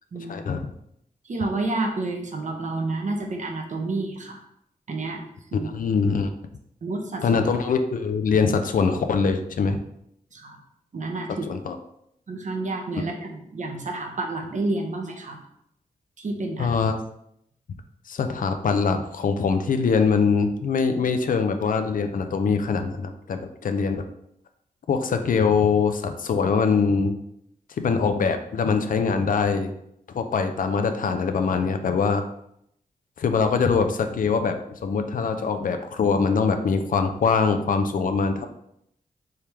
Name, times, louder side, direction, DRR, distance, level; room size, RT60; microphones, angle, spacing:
voice 1, 0.3-0.6 5.5-6.3 7.2-9.8 11.5-11.8 16.6-17.0 18.1-24.0 24.9-27.2 27.8-29.7 30.1-32.2 33.2-34.6 34.8-38.5, left 5 dB, 65° left, 7 dB, 0.5 m, -23 dB
voice 2, 1.2-4.4 4.9-5.2 5.5-5.7 6.8-7.2 10.3-10.6 10.9-11.5 12.3-15.4 16.2-16.7, right 2 dB, 55° right, 2 dB, 0.8 m, -29 dB
3.5 x 3.3 x 3.0 m, 0.75 s
cardioid pair, 60°, 15 cm